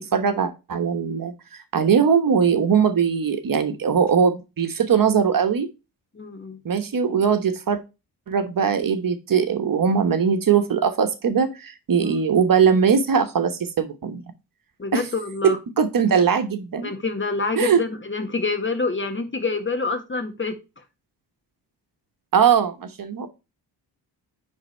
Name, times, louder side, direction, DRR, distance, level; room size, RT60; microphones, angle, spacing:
voice 1, 0.0-5.7 6.6-7.8 8.3-14.2 14.9-15.0 15.4-16.9 17.6-17.8 22.3-23.3, right 7 dB, 50° right, 9 dB, 1.2 m, -20 dB
voice 2, 6.1-6.6 12.0-12.2 14.8-15.6 16.8-20.6, left 3 dB, 25° left, 7 dB, 1.7 m, -27 dB
9.6 x 3.6 x 4.4 m, 0.27 s
supercardioid pair, 60°, 43 cm